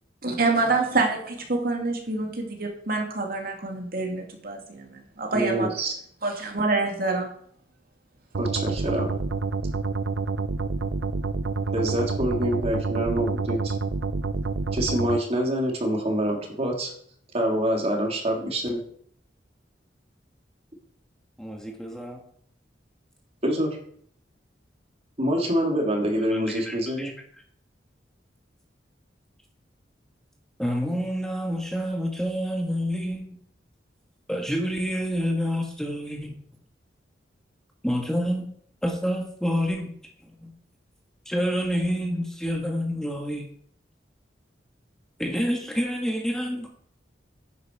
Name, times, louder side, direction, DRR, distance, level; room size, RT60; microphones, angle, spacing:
voice 1, 0.2-5.7 6.2-7.3, right 3 dB, 55° right, 1 dB, 2.4 m, -26 dB
voice 2, 5.3-5.9 8.4-9.1 11.7-13.7 14.7-16.9 17.3-18.8 23.4-23.8 25.2-27.1, equal, 35° right, 0 dB, 3.2 m, -26 dB
sound 1, 8.3-15.2, right 4 dB, 85° right, 0.6 m, -28 dB
voice 3, 21.4-22.2 26.3-27.1 30.6-33.2 34.3-36.3 37.8-38.5 38.8-39.9 40.2-40.5 41.2-43.5 45.2-46.7, equal, 5° left, 1 dB, 1.5 m, -28 dB
11.5 x 9.8 x 4.8 m, 0.63 s
head